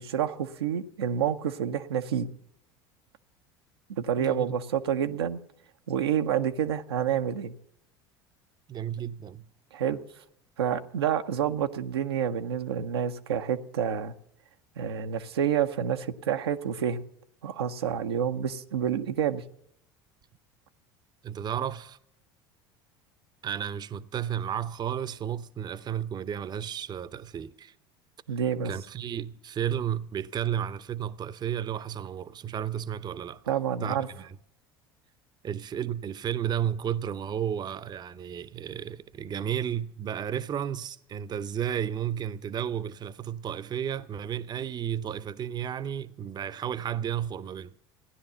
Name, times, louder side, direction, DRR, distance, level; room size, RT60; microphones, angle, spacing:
voice 1, 0.0-2.3 3.9-5.4 5.9-7.5 9.7-10.0 10.6-14.1 14.8-17.0 17.4-19.4 28.3-28.7 33.5-34.1, right 8 dB, 90° right, 0.7 m, -28 dB
voice 2, 4.2-4.6 8.7-9.5 21.2-22.0 23.4-27.7 28.6-33.4 33.8-34.4 35.4-47.7, right 9 dB, 35° right, 0.7 m, -33 dB
16.0 x 10.5 x 6.8 m
hypercardioid pair, 80°, 13 cm